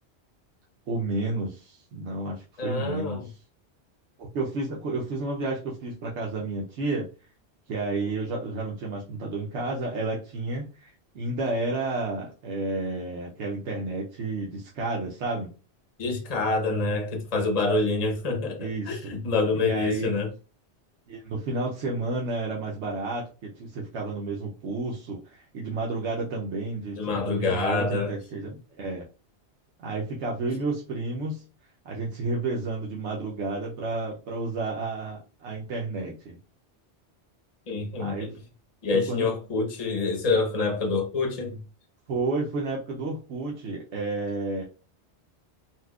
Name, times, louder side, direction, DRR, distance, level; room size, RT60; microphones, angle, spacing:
voice 1, 0.9-3.2 4.2-7.1 7.7-15.5 18.6-19.1 19.6-20.1 21.1-29.0 29.8-31.4 31.8-36.4 38.0-38.3 38.9-39.3 42.1-44.6, right 2 dB, 85° right, 1.0 m, -31 dB
voice 2, 2.6-3.3 16.0-20.3 27.0-28.1 37.7-38.3 38.8-41.6, left 3 dB, 40° left, 0.8 m, -26 dB
4.2 x 2.3 x 2.3 m
omnidirectional pair, 1.1 m